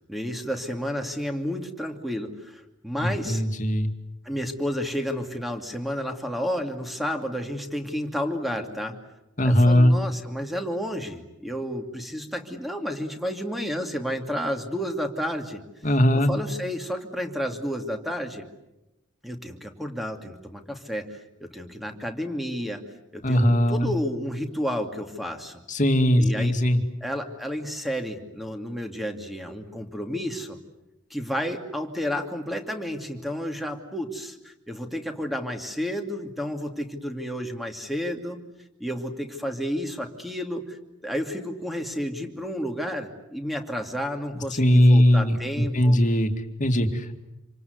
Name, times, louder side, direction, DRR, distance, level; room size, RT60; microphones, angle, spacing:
voice 1, 0.1-3.4 4.2-9.0 9.4-15.6 16.1-18.5 19.2-22.8 23.1-25.6 26.2-26.5 27.0-30.6 31.1-38.4 38.8-46.0, equal, ahead, 5 dB, 2.6 m, -31 dB
voice 2, 3.0-3.9 9.4-9.9 15.8-16.3 23.2-23.9 25.7-26.8 44.3-46.3 46.6-47.2, equal, 40° left, 6 dB, 2.4 m, -20 dB
27.5 x 26.5 x 8.2 m, 0.93 s
head